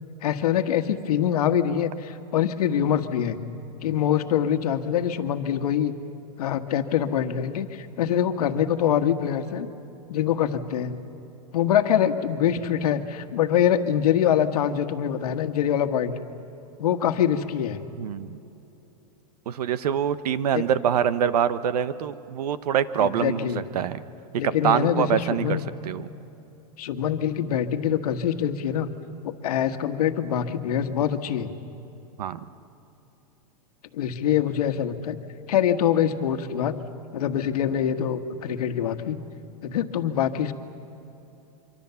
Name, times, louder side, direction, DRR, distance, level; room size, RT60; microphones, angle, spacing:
voice 1, 0.2-3.4 3.8-5.9 6.4-9.7 10.1-10.9 11.5-16.1 16.8-17.8 20.5-20.6 23.0-23.6 24.4-25.7 26.8-28.9 29.2-31.5 33.9-35.2 35.5-36.7 37.1-39.2 39.6-40.5, left 9 dB, 70° left, 7 dB, 1.5 m, -24 dB
voice 2, 18.0-18.4 19.5-23.5 23.7-24.0 24.6-25.6 25.8-26.1 32.2-32.4, right 9 dB, 75° right, 13 dB, 1.1 m, -24 dB
25.5 x 25.0 x 7.1 m, 2.9 s
supercardioid pair, 175°, 20 cm